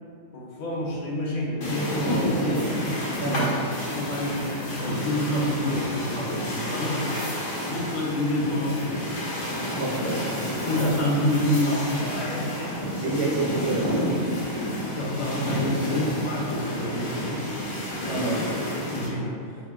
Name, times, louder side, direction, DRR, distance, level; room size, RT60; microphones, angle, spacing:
voice 1, 0.3-2.8 3.9-4.4 4.7-7.2 7.6-9.1 10.6-12.5 15.0-17.7 18.2-18.5 18.9-19.4, left 1 dB, 45° left, -3 dB, 0.7 m, -28 dB
sound 1, 1.6-19.1, equal, 80° left, 1.5 m, -29 dB
voice 2, 3.2-3.7 9.8-10.3 10.8-10.9 13.0-14.0 18.1-18.4, right 3 dB, 65° right, -4 dB, 1.0 m, -28 dB
3.8 x 3.2 x 3.6 m, 2.4 s
omnidirectional pair, 1.4 m